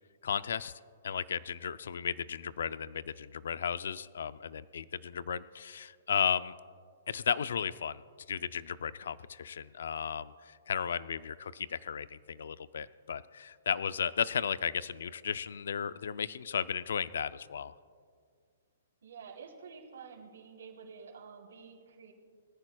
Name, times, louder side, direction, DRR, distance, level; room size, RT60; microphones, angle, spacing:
voice 1, 0.2-0.7 1.0-6.5 7.1-8.0 8.3-17.7, left 7 dB, 60° left, 16 dB, 0.4 m, -34 dB
voice 2, 19.0-22.1, right 6 dB, 75° right, -1 dB, 3.3 m, -49 dB
22.0 x 14.0 x 2.3 m, 2.1 s
hypercardioid pair, 180°, 0 cm